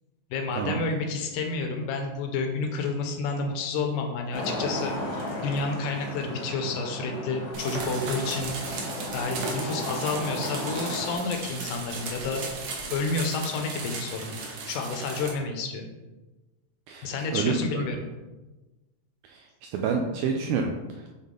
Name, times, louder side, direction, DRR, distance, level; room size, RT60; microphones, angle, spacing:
voice 1, 0.3-8.6 9.1-12.5 12.9-14.4 14.7-15.9 17.0-18.1, left 3 dB, 75° left, 4 dB, 2.0 m, -30 dB
Traffic noise roadway noise, 4.3-11.1, left 1 dB, 60° left, 1.3 m, -35 dB
sound 1, 7.5-15.3, right 3 dB, 70° right, 1.7 m, -36 dB
voice 2, 16.9-17.8 19.2-19.5 19.7-21.1, right 5 dB, 85° right, 2 dB, 1.8 m, -28 dB
7.3 x 3.9 x 3.7 m, 1.1 s
omnidirectional pair, 4.1 m